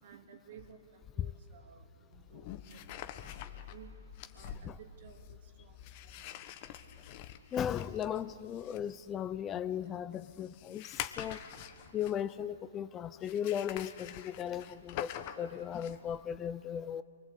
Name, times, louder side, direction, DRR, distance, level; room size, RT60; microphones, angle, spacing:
voice 1, 0.0-3.4 3.7-4.0 4.3-6.3 9.1-9.2 9.8-10.0 11.3-11.4 12.1-12.4 15.9-16.0, right 8 dB, 50° right, 5 dB, 2.6 m, -57 dB
sound 1, 0.6-0.7 2.1-12.4 13.2-16.2, left 11 dB, 40° left, 1.4 m, -46 dB
voice 2, 7.5-11.4 11.9-17.0, left 9 dB, 20° left, 15 dB, 0.5 m, -37 dB
29.0 x 22.5 x 8.3 m, 2.5 s
hypercardioid pair, 135°, 0 cm